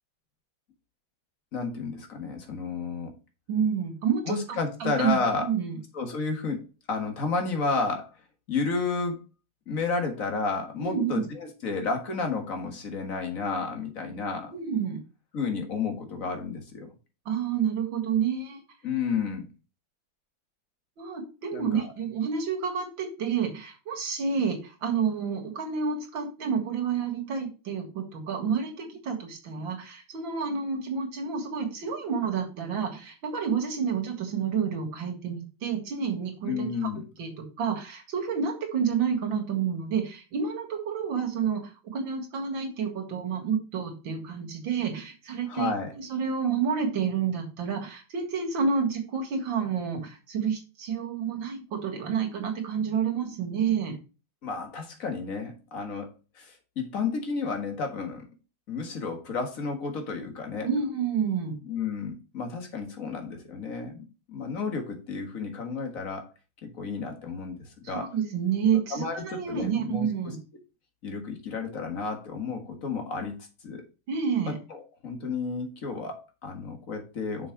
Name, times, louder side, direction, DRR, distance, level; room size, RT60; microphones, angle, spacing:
voice 1, 1.5-3.1 4.3-5.5 5.9-8.1 8.5-9.2 9.7-14.5 15.3-16.9 18.8-19.5 21.5-21.9 36.5-37.0 45.5-45.9 54.4-56.1 56.4-58.3 58.7-60.7 61.6-66.2 66.8-67.6 67.9-68.1 68.9-70.3 71.0-73.4 73.6-73.8 74.4-77.5, left 4 dB, 45° left, 4 dB, 1.9 m, -31 dB
voice 2, 3.5-5.8 10.8-11.2 14.5-15.0 17.3-18.6 21.0-36.9 37.2-37.3 37.6-54.0 60.6-61.6 67.8-70.4 74.1-74.6, right 6 dB, 80° right, 3 dB, 2.6 m, -29 dB
6.5 x 5.4 x 4.6 m, 0.32 s
omnidirectional pair, 2.1 m